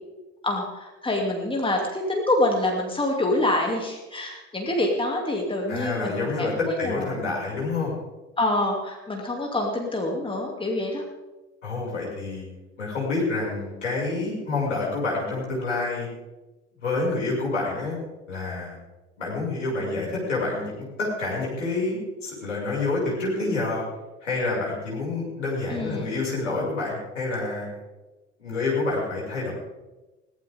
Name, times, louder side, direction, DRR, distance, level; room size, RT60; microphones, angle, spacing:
voice 1, 0.4-7.2 8.4-11.0 25.7-26.1, left 1 dB, 15° left, 0 dB, 2.9 m, -26 dB
voice 2, 5.7-7.9 11.6-12.5 12.8-16.1 16.8-18.0 18.3-18.8 19.2-23.8 24.2-27.7 28.4-29.5, left 3 dB, 75° left, -4 dB, 6.4 m, -28 dB
22.0 x 17.0 x 3.7 m, 1.1 s
figure-of-eight pair, 65°, 36 cm